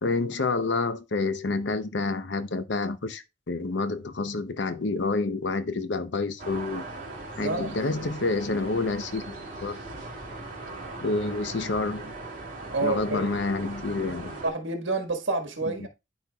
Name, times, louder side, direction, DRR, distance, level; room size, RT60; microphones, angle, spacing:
voice 1, 0.0-6.8 7.4-9.8 11.0-12.1 12.8-14.4 15.7-15.9, left 3 dB, 70° left, 0.7 m, -28 dB
sound 1, 6.4-14.5, right 2 dB, 40° right, 3.1 m, -39 dB
voice 2, 7.4-7.8 12.7-13.3 14.4-15.9, right 3 dB, 90° right, 1.6 m, -29 dB
12.0 x 4.5 x 2.3 m
head